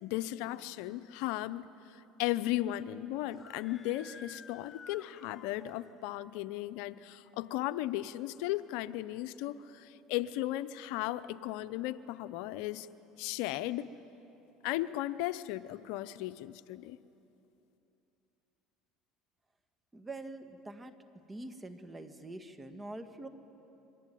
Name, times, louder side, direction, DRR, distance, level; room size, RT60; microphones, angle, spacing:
voice 1, 0.0-12.9 13.2-13.9 14.6-17.0, left 15 dB, 75° left, 14 dB, 0.7 m, -36 dB
Screaming, 3.3-6.1, left 4 dB, 30° left, 1.1 m, -53 dB
voice 2, 19.9-20.9 21.3-23.3, right 2 dB, 15° right, 7 dB, 1.9 m, -44 dB
27.0 x 23.0 x 9.2 m, 3.0 s
supercardioid pair, 100°, 0 cm